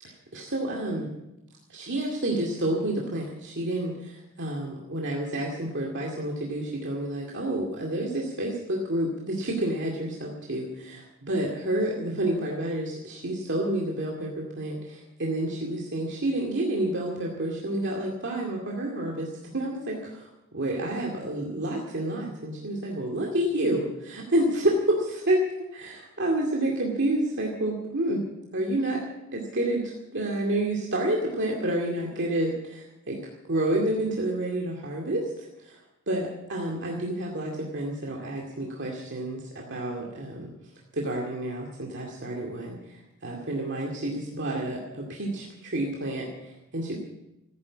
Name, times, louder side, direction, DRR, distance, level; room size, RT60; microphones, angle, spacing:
voice 1, 0.3-1.1 1.7-25.4 25.7-28.2 28.5-29.0 29.3-33.2 33.4-35.8 36.1-40.5 40.9-47.0, right 1 dB, 55° right, -1 dB, 2.3 m, -29 dB
15.5 x 9.9 x 8.4 m, 0.92 s
head